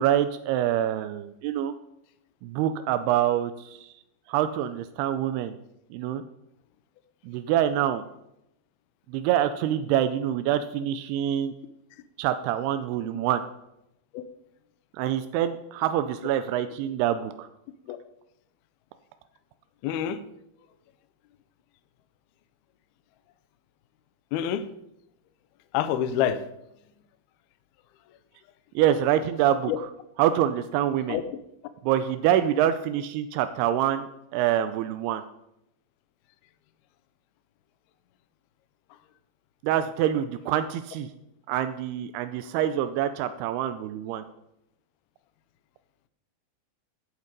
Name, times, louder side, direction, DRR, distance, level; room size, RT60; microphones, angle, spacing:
voice 1, 0.0-1.7 2.4-3.9 4.3-5.6 5.9-6.2 7.3-8.0 9.1-11.5 12.2-13.4 15.0-17.5 28.8-29.9 30.2-31.2 31.8-35.2 39.6-41.1 41.5-44.2, right 11 dB, 80° right, 10 dB, 2.4 m, -26 dB
voice 2, 19.8-20.2 24.3-24.7 25.7-26.4 29.7-29.8 31.1-31.2, left 10 dB, 80° left, 11 dB, 2.4 m, -26 dB
16.5 x 8.0 x 5.3 m, 0.83 s
omnidirectional pair, 5.1 m